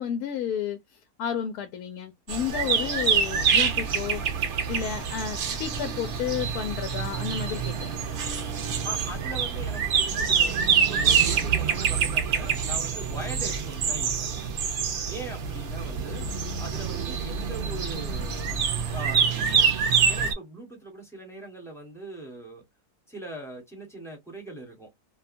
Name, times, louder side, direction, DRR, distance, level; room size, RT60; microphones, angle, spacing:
voice 1, 0.0-4.2 4.7-7.9, left 9 dB, 80° left, 1.1 m, -32 dB
sound 1, 2.3-20.3, right 6 dB, 65° right, 0.8 m, -26 dB
voice 2, 8.8-14.5 15.1-16.3 16.6-18.5 18.9-19.7 20.0-22.7 23.1-24.9, right 1 dB, ahead, 0.8 m, -41 dB
2.7 x 2.2 x 2.5 m
omnidirectional pair, 1.6 m